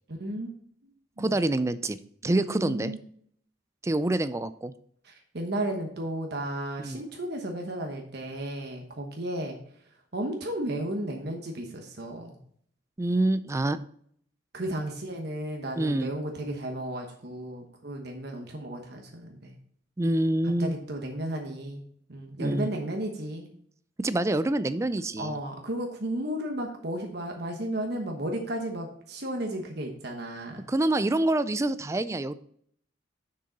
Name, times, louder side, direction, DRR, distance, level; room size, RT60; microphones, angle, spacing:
voice 1, 0.1-0.5 1.2-1.3 2.3-3.0 5.0-9.6 10.1-12.4 14.5-19.6 20.6-21.8 22.1-23.5 25.2-30.7, right 1 dB, 55° right, 2 dB, 1.1 m, -34 dB
voice 2, 1.2-2.0 2.2-2.9 3.8-4.7 6.8-7.0 13.0-13.8 15.8-16.1 20.0-20.8 22.4-22.7 24.0-25.4 30.7-32.4, right 1 dB, 15° right, 14 dB, 0.3 m, -26 dB
6.7 x 6.5 x 4.0 m, 0.64 s
head